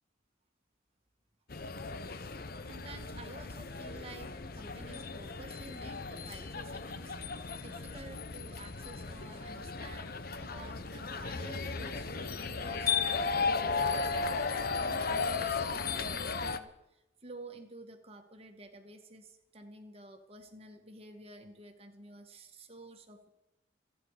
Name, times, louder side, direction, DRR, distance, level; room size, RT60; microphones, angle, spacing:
sound 1, 1.5-16.6, left 4 dB, 50° left, 0.9 m, -35 dB
voice 1, 2.6-4.3 4.5-10.1 10.4-23.3, right 2 dB, 30° right, 4 dB, 1.9 m, -51 dB
28.0 x 9.8 x 5.1 m, 0.91 s
head